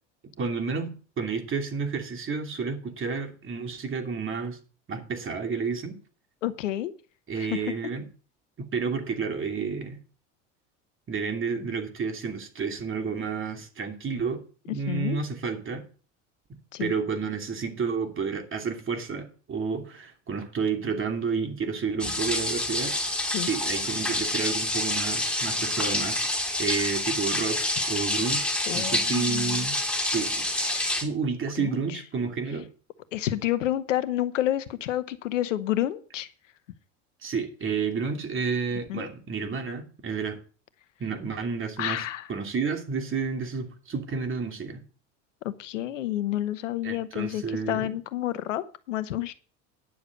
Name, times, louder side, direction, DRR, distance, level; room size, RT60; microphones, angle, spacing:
voice 1, 0.4-4.6 4.9-6.0 7.3-8.1 8.6-10.0 11.1-15.9 16.5-23.0 23.4-26.3 26.6-29.8 30.1-30.4 31.0-32.7 37.2-40.4 41.0-44.8 46.8-47.9, right 5 dB, 35° right, 2.7 m, -30 dB
voice 2, 6.4-6.9 7.3-7.5 14.9-15.2 16.7-16.9 23.3-23.5 28.7-29.6 30.6-30.9 31.6-31.8 33.1-36.3 38.9-39.1 41.8-42.3 45.4-49.3, left 13 dB, 85° left, 1.1 m, -29 dB
sound 1, 22.0-31.0, left 1 dB, 5° left, 3.1 m, -27 dB
10.0 x 7.0 x 6.4 m
hypercardioid pair, 85°, 37 cm